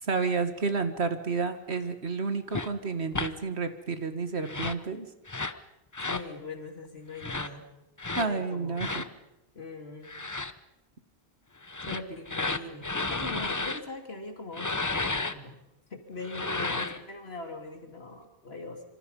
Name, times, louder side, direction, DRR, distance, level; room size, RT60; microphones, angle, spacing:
voice 1, 0.0-5.1 8.1-9.0, right 4 dB, 80° right, 8 dB, 2.0 m, -30 dB
sound 1, 2.5-2.7 3.1-3.3 4.4-4.8 5.3-5.6 5.9-6.3 7.2-7.5 8.0-8.3 8.8-9.1 10.0-10.5 11.6-13.8 14.5-15.3 16.2-17.0, left 3 dB, 20° left, 0.7 m, -32 dB
voice 2, 6.1-7.7 8.1-8.8 9.5-10.1 11.9-15.6 15.9-18.8, left 3 dB, 70° left, 4 dB, 3.1 m, -41 dB
26.5 x 25.0 x 5.5 m, 0.95 s
omnidirectional pair, 1.1 m